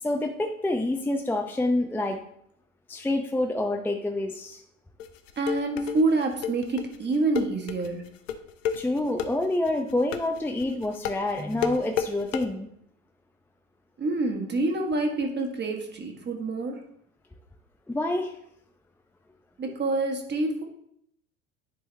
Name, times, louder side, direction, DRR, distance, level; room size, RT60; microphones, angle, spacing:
voice 1, 0.0-2.2 2.9-4.6 8.8-12.7 17.9-18.3, left 2 dB, 5° left, 4 dB, 0.6 m, -27 dB
sound 1, 5.0-12.4, left 8 dB, 65° left, 0.8 m, -31 dB
voice 2, 5.4-8.0 14.0-16.8 19.6-20.6, right 2 dB, 25° right, 3 dB, 1.7 m, -27 dB
10.0 x 4.6 x 3.3 m, 0.72 s
figure-of-eight pair, 75°, 41 cm